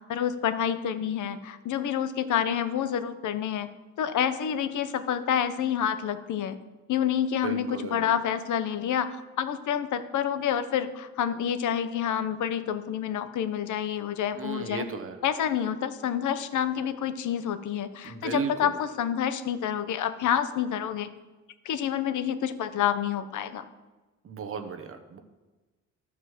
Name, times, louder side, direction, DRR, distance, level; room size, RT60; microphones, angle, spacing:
voice 1, 0.1-3.7 4.0-6.6 6.9-14.9 15.2-21.1 21.6-23.6, left 9 dB, 70° left, 11 dB, 0.8 m, -28 dB
voice 2, 7.4-8.1 14.4-15.2 18.0-18.7 24.2-25.2, right 6 dB, 45° right, 7 dB, 1.0 m, -35 dB
12.5 x 4.8 x 7.3 m, 1.2 s
cardioid pair, 130°, 31 cm